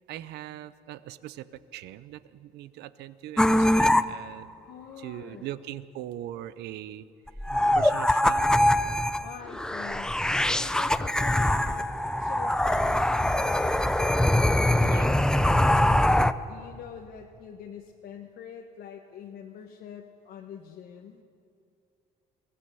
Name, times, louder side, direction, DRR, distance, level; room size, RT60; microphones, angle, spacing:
voice 1, 0.1-4.5 5.0-7.1 7.8-8.8 10.2-10.5 14.8-15.1, right 13 dB, 80° right, 16 dB, 0.8 m, -40 dB
sound 1, 3.4-4.0 7.3-16.3, left 1 dB, 5° left, 0.5 m, -23 dB
voice 2, 4.6-5.4 9.2-15.9 16.4-21.2, left 8 dB, 70° left, 1 dB, 1.4 m, -45 dB
23.0 x 16.5 x 7.0 m, 2.5 s
cardioid pair, 110°, 17 cm